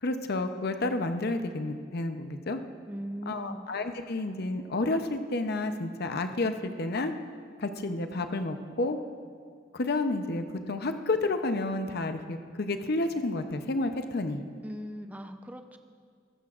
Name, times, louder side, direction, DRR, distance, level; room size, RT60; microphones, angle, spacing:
voice 1, 0.0-2.6 3.3-7.1 7.6-9.0 9.7-14.4, left 2 dB, 55° left, 7 dB, 0.7 m, -30 dB
voice 2, 2.8-3.7 14.6-15.8, equal, 10° right, 7 dB, 0.6 m, -39 dB
20.5 x 14.5 x 2.5 m, 2.1 s
head